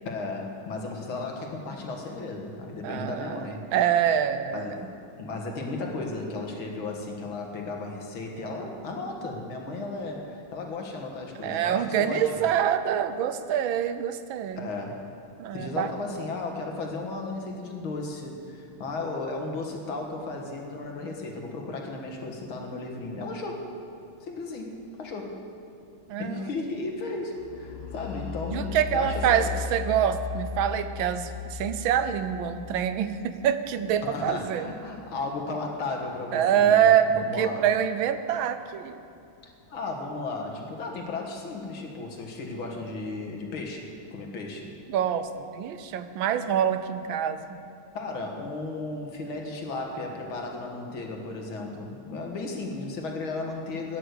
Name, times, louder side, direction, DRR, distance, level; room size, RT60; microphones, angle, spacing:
voice 1, 0.1-3.7 4.5-12.5 14.6-15.1 15.5-23.7 24.2-25.4 26.2-29.6 34.0-37.6 39.7-44.7 47.9-54.0, left 3 dB, 75° left, 1 dB, 2.5 m, -35 dB
voice 2, 2.8-4.8 11.4-14.7 15.4-15.9 26.1-26.5 28.5-34.7 36.3-39.0 44.9-47.4, right 9 dB, 75° right, 11 dB, 1.4 m, -25 dB
sound 1, 27.3-35.1, left 6 dB, 55° left, 2.1 m, -37 dB
13.0 x 9.8 x 8.1 m, 2.5 s
omnidirectional pair, 2.2 m